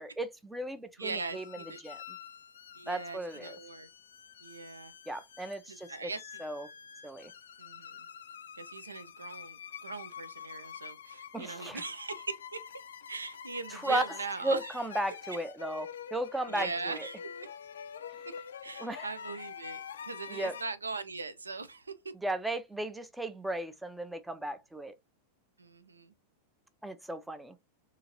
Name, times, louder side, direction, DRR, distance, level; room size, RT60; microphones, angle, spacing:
voice 1, 0.0-1.4 1.8-2.0 2.9-3.6 5.1-6.1 6.4-6.7 7.0-7.3 11.3-11.8 13.7-14.0 14.4-17.1 18.8-19.1 20.3-20.5 22.2-24.9 26.8-27.5, right 1 dB, 5° right, 0.4 m, -35 dB
sound 1, 1.0-20.6, left 8 dB, 65° left, 0.3 m, -47 dB
voice 2, 1.0-1.8 2.8-3.9 4.4-4.9 5.7-6.2 7.6-8.0 8.6-12.6 13.1-14.8 16.5-17.2 18.6-22.1 25.6-26.1, right 4 dB, 75° right, 0.3 m, -40 dB
2.8 x 2.5 x 2.7 m
figure-of-eight pair, 90°, 0 cm